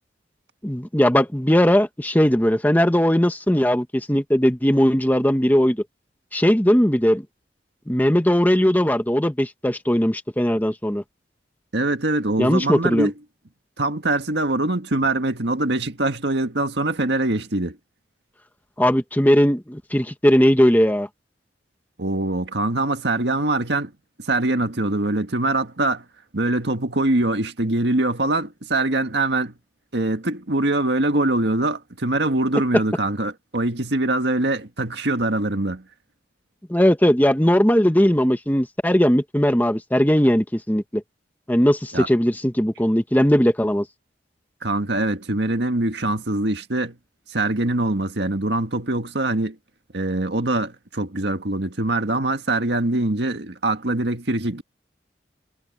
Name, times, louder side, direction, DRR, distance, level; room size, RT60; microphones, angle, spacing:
voice 1, 0.6-5.8 6.3-7.2 7.9-11.0 12.4-13.1 18.8-21.1 36.7-41.0 41.5-43.9, equal, 10° left, 1.1 m, -19 dB
voice 2, 11.7-13.1 13.8-17.8 22.0-23.9 24.2-26.0 26.3-29.5 29.9-35.8 41.9-42.1 44.6-47.0 47.3-49.6 49.9-54.6, right 2 dB, 70° right, 1.8 m, -23 dB
head